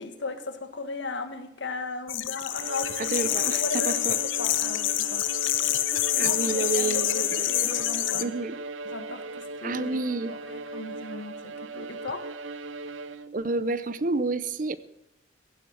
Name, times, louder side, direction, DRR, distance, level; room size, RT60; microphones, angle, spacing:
voice 1, 0.0-5.2 6.1-8.3 8.8-10.0 10.3-12.2, left 3 dB, 70° left, 8 dB, 1.7 m, -37 dB
sound 1, 2.1-8.2, left 14 dB, 90° left, 0.7 m, -27 dB
Bowed string instrument, 2.5-13.5, right 3 dB, 90° right, 0.6 m, -38 dB
voice 2, 3.0-4.2 6.2-7.5 8.2-8.6 9.6-10.3 13.3-14.8, right 3 dB, 45° right, 15 dB, 0.6 m, -29 dB
15.5 x 7.7 x 7.7 m, 0.86 s
head